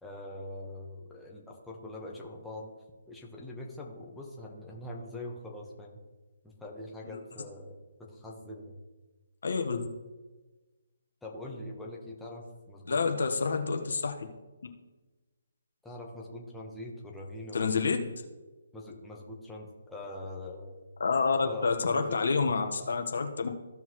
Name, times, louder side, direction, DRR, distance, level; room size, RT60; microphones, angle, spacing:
voice 1, 0.0-2.7 3.1-6.0 6.4-8.8 11.2-13.3 15.8-18.1 18.7-20.8 21.4-22.6, left 1 dB, 5° left, -3 dB, 1.3 m, -43 dB
voice 2, 9.4-9.9 12.9-14.3 17.5-18.0 21.0-23.5, left 4 dB, 70° left, 5 dB, 1.3 m, -28 dB
15.0 x 5.5 x 3.1 m, 1.2 s
hypercardioid pair, 150°, 0 cm